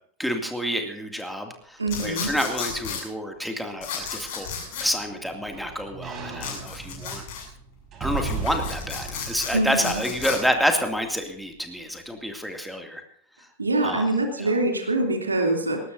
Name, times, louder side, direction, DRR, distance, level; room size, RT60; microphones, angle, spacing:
voice 1, 0.2-4.5 4.8-7.2 8.0-13.0 13.8-14.1 14.4-14.5, equal, ahead, 4 dB, 2.4 m, -28 dB
voice 2, 1.8-2.3 9.5-10.0 13.6-15.8, right 2 dB, 80° right, 3 dB, 3.0 m, -24 dB
sound 1, 1.9-3.0 3.8-4.9 6.4-7.5 8.1-10.4, left 7 dB, 50° left, 7.1 m, -33 dB
sound 2, 4.3-10.6 11.1-11.2, right 4 dB, 30° right, 4.5 m, -36 dB
20.5 x 18.5 x 2.7 m, 0.67 s
figure-of-eight pair, 90°, 0 cm